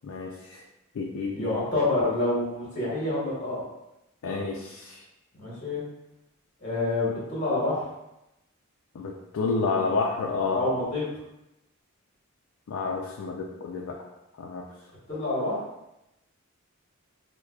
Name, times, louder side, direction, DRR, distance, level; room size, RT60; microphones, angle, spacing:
voice 1, 0.0-0.6 1.0-1.6 4.2-5.0 8.9-10.6 12.7-14.0 14.4-14.6, left 4 dB, 75° left, 0 dB, 0.4 m, -30 dB
voice 2, 1.3-3.6 5.4-5.8 6.6-7.9 10.5-11.1 15.1-15.6, left 2 dB, 35° left, -7 dB, 1.0 m, -27 dB
4.6 x 2.1 x 2.3 m, 0.92 s
head